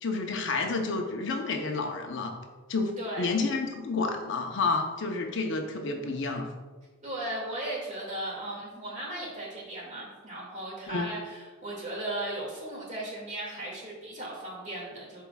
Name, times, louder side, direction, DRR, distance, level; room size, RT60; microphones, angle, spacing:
voice 1, 0.0-2.3 2.7-2.9 3.2-6.5 10.9-11.1, left 3 dB, 60° left, 3 dB, 0.7 m, -30 dB
voice 2, 3.0-3.3 7.0-15.2, right 1 dB, 35° right, -4 dB, 2.1 m, -36 dB
11.0 x 4.6 x 2.3 m, 1.4 s
head